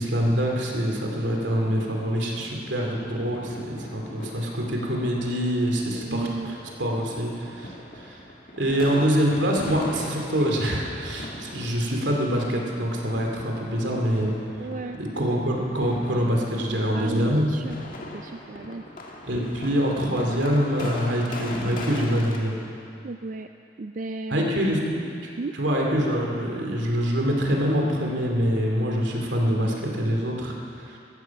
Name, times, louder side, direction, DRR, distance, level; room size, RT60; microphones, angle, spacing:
voice 1, 0.0-6.5 6.8-8.2 8.6-14.4 15.0-17.5 19.3-22.5 24.3-25.3 25.6-31.0, equal, 80° right, 0 dB, 2.7 m, -25 dB
sound 1, 2.7-22.4, left 1 dB, 50° left, 1.8 m, -40 dB
voice 2, 5.9-6.6 14.6-15.0 16.9-17.8 18.1-18.8 23.0-23.5 23.8-24.7 25.4-25.6, right 3 dB, 45° right, 7 dB, 0.4 m, -34 dB
16.0 x 14.0 x 5.9 m, 2.6 s
head